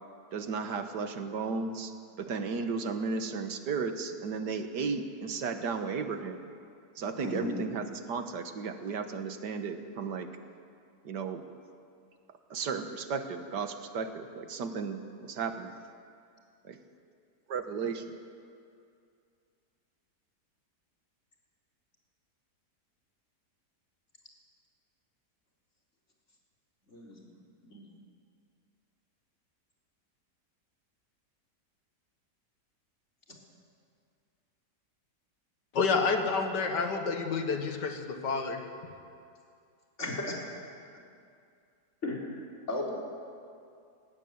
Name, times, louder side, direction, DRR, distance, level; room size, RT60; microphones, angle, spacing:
voice 1, 0.3-1.9 2.2-6.4 7.0-10.3 11.0-11.4 12.5-15.7 16.6-16.8 17.5-18.1, right 5 dB, 85° right, 7 dB, 1.9 m, -34 dB
voice 2, 7.2-7.6 26.9-27.2 27.7-27.9 40.0-40.4 42.0-42.2 42.7-42.9, left 2 dB, 40° left, -2 dB, 4.2 m, -35 dB
voice 3, 35.7-38.9, left 4 dB, 90° left, 5 dB, 2.3 m, -29 dB
20.5 x 16.0 x 9.5 m, 2.4 s
omnidirectional pair, 1.8 m